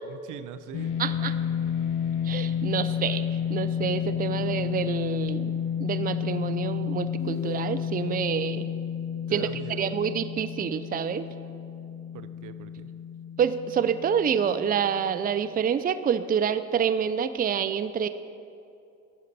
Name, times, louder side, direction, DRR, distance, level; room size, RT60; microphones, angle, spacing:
voice 1, 0.1-1.0 9.3-10.0 12.1-12.9, right 9 dB, 80° right, 12 dB, 0.6 m, -41 dB
sound 1, 0.7-15.1, left 8 dB, 85° left, 1.0 m, -31 dB
voice 2, 1.0-1.3 2.2-5.5 5.8-8.7 9.3-9.5 9.8-11.2 13.4-18.1, right 7 dB, 30° right, 12 dB, 0.4 m, -27 dB
sound 2, 7.2-8.2, left 5 dB, 35° left, 0.5 m, -41 dB
10.5 x 9.8 x 4.1 m, 2.6 s
cardioid pair, 90°, 30 cm